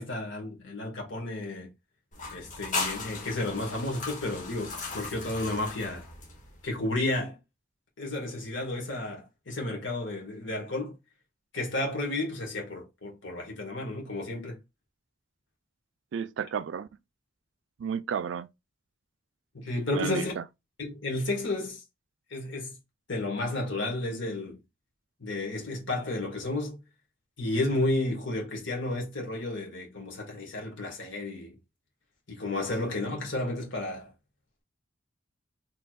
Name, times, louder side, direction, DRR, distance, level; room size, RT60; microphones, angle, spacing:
voice 1, 0.0-1.7 2.3-6.0 6.6-7.4 8.0-11.0 11.5-14.6 19.5-20.3 20.8-21.8 22.3-22.8 23.1-24.6 25.2-26.8 27.4-31.6 32.3-34.1, left 2 dB, 80° left, 1.6 m, -32 dB
sound 1, 2.1-6.7, left 3 dB, 45° left, 1.4 m, -37 dB
voice 2, 16.1-16.9 17.8-18.5 19.9-20.4, right 7 dB, 75° right, 0.3 m, -32 dB
4.6 x 3.4 x 2.3 m
head